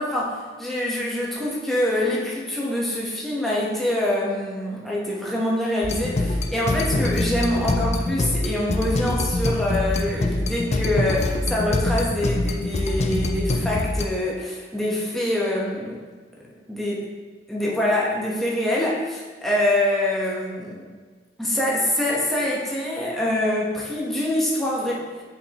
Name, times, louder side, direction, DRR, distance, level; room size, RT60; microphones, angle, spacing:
voice 1, 0.0-16.0 16.7-17.0 17.5-20.9 21.4-25.2, left 1 dB, ahead, -5 dB, 1.0 m, -25 dB
sound 1, 5.8-14.0, left 2 dB, 35° left, 0.4 m, -24 dB
6.6 x 5.1 x 2.9 m, 1.5 s
head